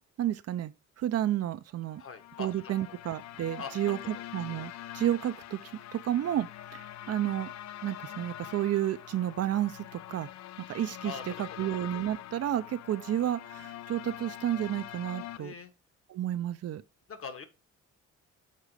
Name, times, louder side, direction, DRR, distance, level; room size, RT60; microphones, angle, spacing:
voice 1, 0.2-0.7 1.0-2.0 2.4-7.5 7.8-10.3 10.7-11.1 11.4-15.5 16.1-16.8, right 12 dB, 55° right, 0.5 m, -31 dB
sound 1, 1.9-15.4, left 13 dB, 65° left, 0.5 m, -44 dB
voice 2, 2.0-3.0 3.6-3.7 4.1-4.2 11.0-11.4 11.6-11.7 15.4-15.7 17.1-17.5, left 6 dB, 45° left, 1.2 m, -42 dB
6.7 x 3.7 x 4.8 m
cardioid pair, 90°, 30 cm